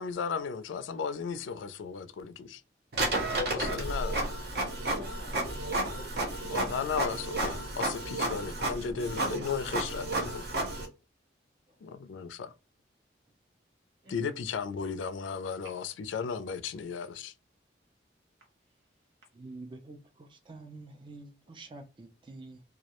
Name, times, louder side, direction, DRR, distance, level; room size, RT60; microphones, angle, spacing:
voice 1, 0.0-2.6 3.7-4.1 6.4-10.4 11.8-12.5 14.1-17.3, left 6 dB, 85° left, 0.3 m, -35 dB
Printer, 2.9-10.9, right 2 dB, 55° right, 0.7 m, -32 dB
voice 2, 3.3-3.8 4.9-6.3 14.0-14.3, left 2 dB, 80° right, 1.1 m, -43 dB
voice 3, 19.3-22.6, right 2 dB, 25° right, 0.3 m, -47 dB
2.3 x 2.0 x 2.9 m
head